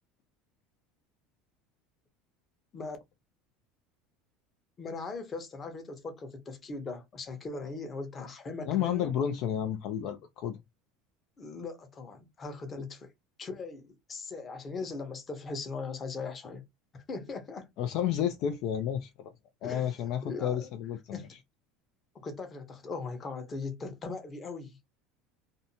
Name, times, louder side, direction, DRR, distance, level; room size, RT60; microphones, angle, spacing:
voice 1, 4.8-9.1 11.4-13.1 13.4-16.6 16.9-17.7 19.6-20.7 21.1-21.3 22.1-24.8, left 4 dB, 30° left, 0.9 m, -39 dB
voice 2, 8.6-10.6 17.8-19.1 19.6-21.2, left 9 dB, 60° left, 0.4 m, -31 dB
2.5 x 2.2 x 2.8 m
supercardioid pair, 120°, 0 cm